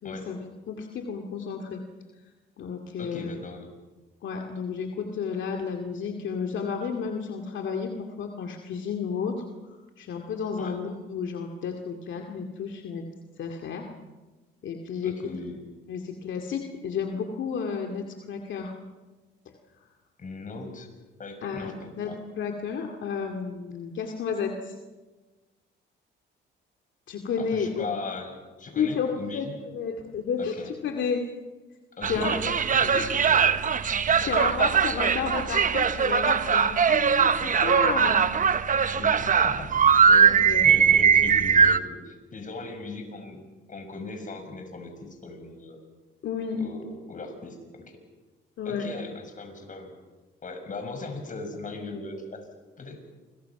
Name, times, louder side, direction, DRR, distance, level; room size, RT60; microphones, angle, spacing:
voice 1, 0.0-1.8 2.6-3.3 4.2-9.4 10.0-13.0 13.4-13.9 14.6-15.1 15.9-18.7 21.4-22.1 22.4-24.7 27.1-27.9 28.8-31.2 32.1-32.3 32.9-33.1 34.2-38.2 40.1-40.8 46.2-46.6 48.6-48.9, left 6 dB, 70° left, 3 dB, 2.3 m, -32 dB
voice 2, 3.0-3.7 10.6-10.7 15.0-15.6 20.2-20.9 21.2-22.2 27.4-29.5 30.4-30.7 32.0-33.5 34.1-34.5 35.0-35.2 38.9-39.7 40.3-43.4 43.7-45.8 46.6-47.6 47.9-48.0 48.6-49.9 50.4-52.5 52.8-53.0, left 3 dB, 40° left, 5 dB, 6.2 m, -38 dB
sound 1, 32.0-41.8, right 6 dB, 40° right, 1.1 m, -21 dB
28.0 x 23.0 x 6.0 m, 1.2 s
cardioid pair, 90°, 20 cm